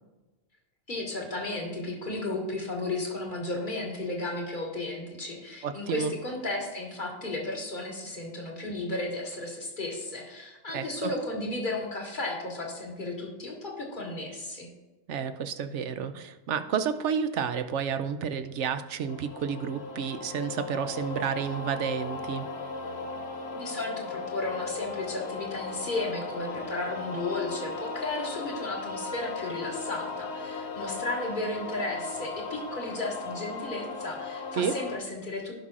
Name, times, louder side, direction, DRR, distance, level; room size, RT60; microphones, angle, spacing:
voice 1, 0.9-14.7 23.5-35.5, left 2 dB, 40° left, -1 dB, 1.8 m, -34 dB
voice 2, 5.6-6.1 10.7-11.1 15.1-22.5 34.6-34.8, right 7 dB, 70° right, 10 dB, 0.9 m, -30 dB
sound 1, 19.1-35.0, left 4 dB, 60° left, 1.0 m, -37 dB
16.5 x 5.6 x 2.5 m, 1.2 s
omnidirectional pair, 1.3 m